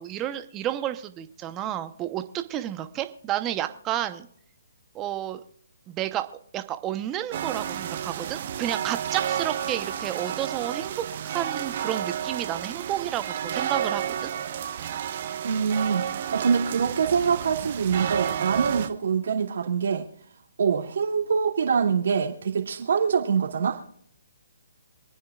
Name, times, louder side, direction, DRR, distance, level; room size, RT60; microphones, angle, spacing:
voice 1, 0.0-4.3 4.9-5.4 5.9-6.3 6.5-14.3, right 12 dB, 20° right, 0.9 m, -31 dB
sound 1, 7.3-18.9, right 9 dB, 45° right, 1.1 m, -31 dB
voice 2, 15.4-20.1 20.6-23.8, right 6 dB, 65° right, 2.5 m, -24 dB
26.5 x 9.4 x 2.4 m
hypercardioid pair, 145°, 0 cm